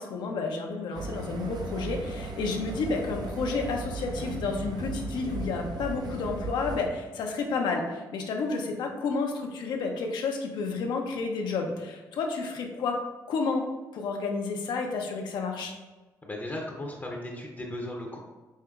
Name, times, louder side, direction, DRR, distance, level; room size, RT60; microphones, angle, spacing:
voice 1, 0.0-13.0 13.3-13.6 13.9-15.7, left 4 dB, 80° left, 2 dB, 0.6 m, -31 dB
sound 1, 0.9-6.9, right 3 dB, 70° right, 0.5 m, -36 dB
voice 2, 16.2-18.2, left 1 dB, 25° left, 0 dB, 0.6 m, -36 dB
5.4 x 2.8 x 2.3 m, 1.2 s
cardioid pair, 75°, 8 cm